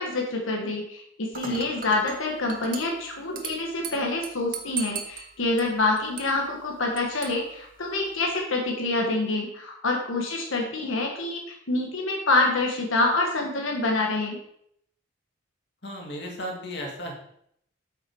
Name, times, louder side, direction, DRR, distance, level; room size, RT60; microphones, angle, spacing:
voice 1, 0.0-14.4, left 2 dB, 80° left, 0 dB, 1.4 m, -26 dB
Dishes pots and pans / Glass, 1.3-8.3, right 6 dB, 45° right, 1.0 m, -40 dB
voice 2, 15.8-17.1, equal, 55° left, 0 dB, 2.1 m, -35 dB
8.3 x 6.0 x 4.7 m, 0.71 s
head